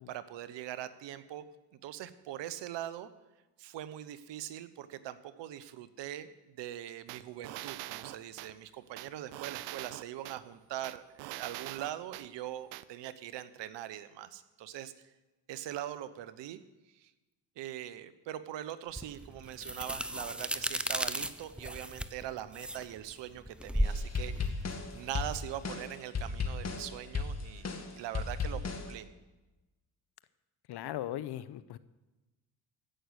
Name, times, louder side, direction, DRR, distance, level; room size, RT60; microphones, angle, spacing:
voice 1, 0.1-1.4 1.7-3.1 3.6-14.9 15.5-16.6 16.9-17.1 17.6-27.7 27.9-29.1, right 12 dB, 70° right, 14 dB, 1.0 m, -42 dB
sound 1, 7.1-8.5 9.0-10.4 10.8-12.3 12.7-12.8, right 16 dB, 85° right, 0.6 m, -42 dB
sound 2, 19.0-25.7, equal, ahead, 0.7 m, -35 dB
sound 3, 23.8-28.9, left 4 dB, 35° left, 2.0 m, -36 dB
voice 2, 30.7-31.8, left 13 dB, 65° left, 16 dB, 0.8 m, -38 dB
15.5 x 6.5 x 8.1 m, 1.1 s
supercardioid pair, 65°, 44 cm